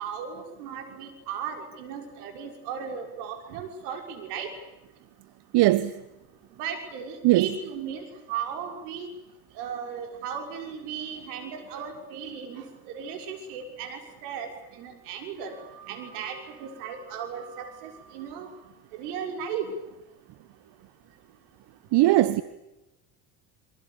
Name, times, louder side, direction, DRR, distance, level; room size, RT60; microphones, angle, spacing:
voice 1, 0.0-4.5 6.6-9.1 9.6-12.6 12.9-14.5 14.8-18.5 19.0-19.7, right 7 dB, 75° right, 6.3 m, -36 dB
voice 2, 5.5-5.9 7.2-7.5 21.9-22.4, right 16 dB, 60° right, 1.3 m, -19 dB
28.0 x 26.0 x 7.2 m
hypercardioid pair, 80°, 46 cm